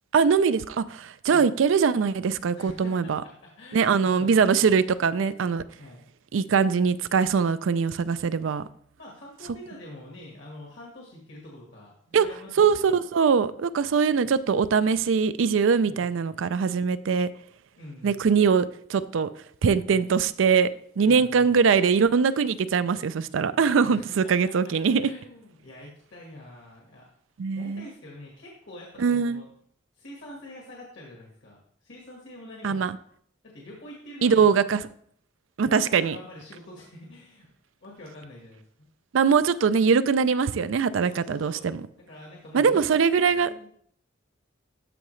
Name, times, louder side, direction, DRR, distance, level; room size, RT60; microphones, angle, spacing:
voice 1, 0.1-3.2 3.7-5.6 6.3-8.6 12.1-12.3 12.6-17.3 18.0-19.3 19.6-20.7 21.0-25.1 27.4-27.9 29.0-29.4 32.6-33.0 34.2-34.8 35.6-36.2 39.1-41.8 42.5-43.5, right 6 dB, 85° right, 0.4 m, -22 dB
voice 2, 2.5-4.5 5.8-6.0 9.0-12.9 15.9-16.1 17.8-18.3 19.9-20.0 21.0-21.5 23.8-24.3 24.8-27.1 27.6-29.4 29.9-32.8 33.4-34.6 35.7-37.5 37.8-38.6 41.1-41.6 42.0-43.7, left 1 dB, 65° left, 1.6 m, -45 dB
13.0 x 4.8 x 3.2 m
head